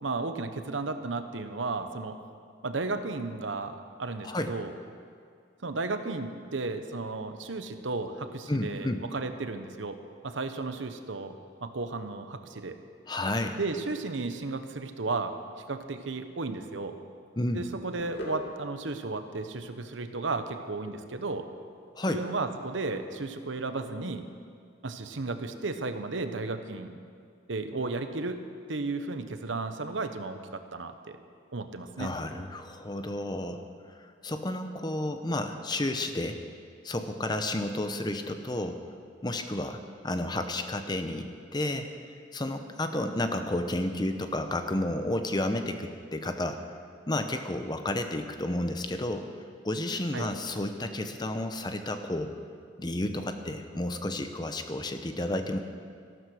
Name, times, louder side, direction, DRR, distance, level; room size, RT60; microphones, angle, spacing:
voice 1, 0.0-2.2 2.6-4.7 5.6-10.0 10.2-12.8 13.6-15.3 15.7-16.9 17.5-21.4 22.1-24.2 24.8-26.9 27.5-28.4 28.7-31.2 31.5-32.1 50.1-50.3, right 3 dB, 85° right, 8 dB, 1.0 m, -34 dB
voice 2, 8.5-9.0 13.1-13.6 17.4-17.7 21.9-22.2 32.0-33.6 34.2-36.4 36.8-38.8 39.2-41.9 42.3-46.6 47.1-49.3 49.6-52.3 52.8-55.6, left 1 dB, 20° left, 7 dB, 0.8 m, -31 dB
sound 1, 18.0-24.6, right 1 dB, 65° left, 2.8 m, -48 dB
13.5 x 12.5 x 6.4 m, 2.2 s
head